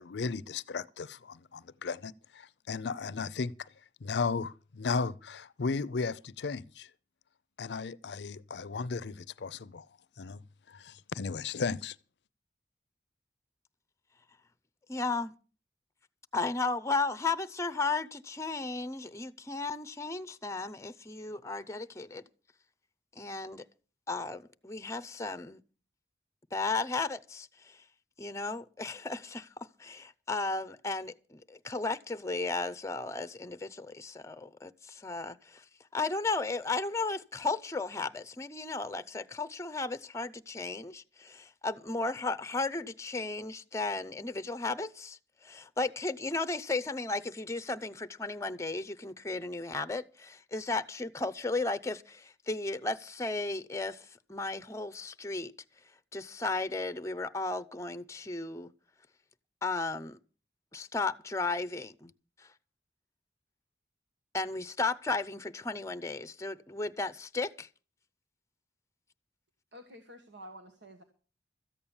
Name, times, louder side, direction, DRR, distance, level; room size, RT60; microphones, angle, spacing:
voice 1, 0.0-3.7 4.0-6.9 7.6-9.9 10.2-12.0, left 4 dB, 75° left, 0.5 m, -35 dB
voice 2, 14.9-15.3 16.3-22.2 23.2-23.6 24.1-25.6 26.5-27.8 28.2-55.5 55.8-58.7 59.6-60.2 60.7-62.1 62.4-62.5 64.3-67.7, left 3 dB, 15° left, 0.6 m, -35 dB
voice 3, 69.7-71.0, equal, 85° right, 1.6 m, -50 dB
14.0 x 8.6 x 7.1 m
head